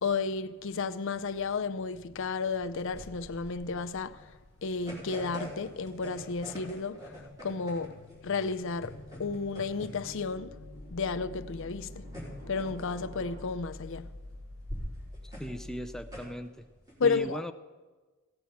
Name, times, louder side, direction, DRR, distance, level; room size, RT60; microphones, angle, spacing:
voice 1, 0.0-12.1 12.5-14.1 17.0-17.4, left 4 dB, 60° left, 0.6 m, -33 dB
sound 1, 2.2-16.9, equal, 15° right, 4.4 m, -46 dB
sound 2, 8.7-16.2, left 1 dB, 60° right, 2.2 m, -48 dB
sound 3, 9.0-13.4, equal, 80° right, 5.7 m, -53 dB
voice 2, 15.2-16.7 17.0-17.5, equal, ahead, 0.5 m, -38 dB
16.5 x 7.6 x 7.1 m
head